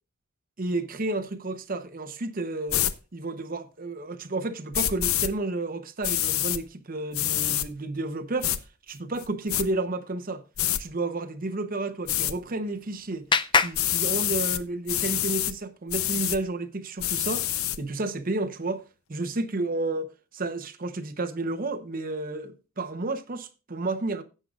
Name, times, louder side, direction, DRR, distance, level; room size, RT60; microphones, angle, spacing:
voice 1, 0.6-2.8 3.1-8.5 8.9-10.4 10.8-13.2 13.5-17.5 17.8-24.2, right 2 dB, 40° right, 0.9 m, -31 dB
sound 1, 2.7-2.9 4.7-5.3 6.0-6.6 7.1-7.7 8.4-8.6 9.2-9.6 10.6-10.8 12.1-12.3 13.7-14.6 14.9-15.5 15.9-16.4 17.0-17.8, left 12 dB, 90° left, 0.7 m, -26 dB
Clapping, 12.2-14.8, left 5 dB, 20° left, 0.4 m, -29 dB
16.5 x 7.7 x 2.4 m
head